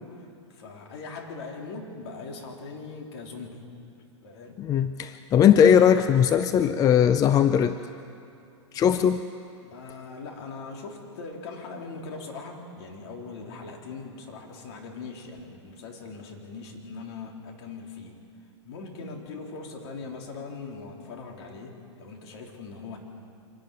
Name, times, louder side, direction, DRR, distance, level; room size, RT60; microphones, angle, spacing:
voice 1, 0.0-3.8 4.2-4.7 9.7-18.2 18.6-23.0, left 4 dB, 60° left, 1 dB, 3.6 m, -40 dB
voice 2, 4.6-7.8 8.7-9.2, left 8 dB, 25° left, 11 dB, 0.6 m, -19 dB
25.5 x 12.0 x 9.2 m, 2.5 s
hypercardioid pair, 115°, 16 cm